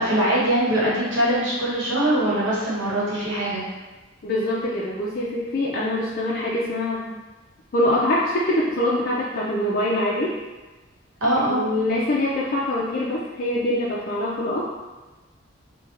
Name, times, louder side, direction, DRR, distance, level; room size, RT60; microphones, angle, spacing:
voice 1, 0.0-3.6 11.2-11.6, right 1 dB, 70° right, -7 dB, 1.0 m, -22 dB
voice 2, 4.2-7.1 7.7-10.4 11.5-14.6, left 1 dB, 45° left, -6 dB, 0.4 m, -24 dB
3.3 x 2.2 x 3.2 m, 1.2 s
head